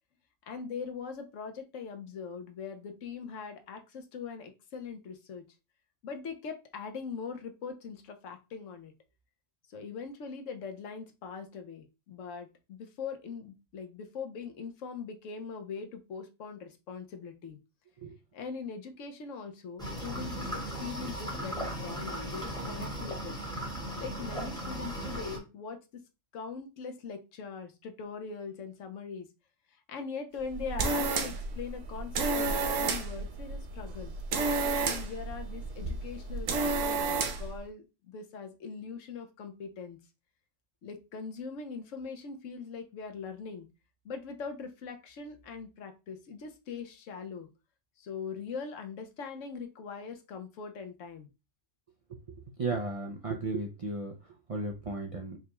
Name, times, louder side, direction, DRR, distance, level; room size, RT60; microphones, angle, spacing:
voice 1, 0.5-5.4 6.0-8.9 9.7-17.6 18.3-23.3 23.9-25.8 26.3-29.3 29.9-34.1 34.7-40.0 40.8-43.7 44.0-47.5 48.0-51.3, left 5 dB, 80° left, 6 dB, 1.1 m, -41 dB
sound 1, 19.8-25.4, equal, 5° left, 0.9 m, -37 dB
sound 2, 30.4-37.6, right 3 dB, 85° right, 1.0 m, -31 dB
voice 2, 52.6-54.1 54.5-55.4, right 3 dB, 55° right, 1 dB, 0.3 m, -34 dB
4.8 x 2.2 x 3.0 m, 0.28 s
omnidirectional pair, 1.3 m